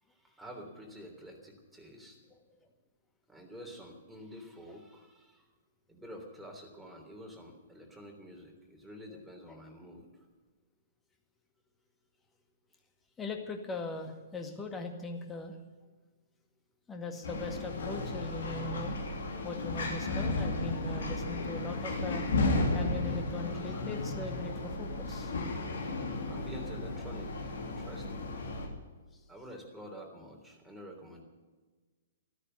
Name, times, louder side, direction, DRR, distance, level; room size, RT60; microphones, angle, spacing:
voice 1, 0.0-2.2 3.3-5.5 5.9-10.3 23.0-23.4 26.3-28.2 29.3-31.2, equal, ahead, 0 dB, 3.3 m, -49 dB
voice 2, 13.2-15.6 16.9-19.0 19.4-22.3 22.7-25.3, left 2 dB, 15° left, 4 dB, 2.0 m, -40 dB
sound 1, 17.2-28.7, left 2 dB, 60° left, 2.9 m, -34 dB
14.0 x 13.5 x 6.8 m, 1.3 s
figure-of-eight pair, 115°, 0 cm